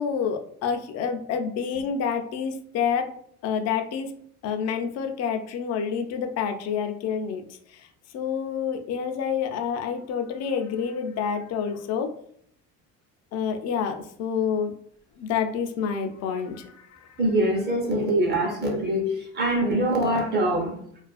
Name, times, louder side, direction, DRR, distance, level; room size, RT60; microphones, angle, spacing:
voice 1, 0.0-3.1 3.4-4.1 4.4-7.4 7.7-7.9 8.1-12.1 13.3-14.7 15.2-17.1, left 7 dB, 55° left, 6 dB, 0.4 m, -28 dB
voice 2, 17.2-20.8, right 1 dB, 30° right, 1 dB, 0.7 m, -24 dB
2.4 x 2.2 x 2.3 m, 0.64 s
cardioid pair, 115°, 32 cm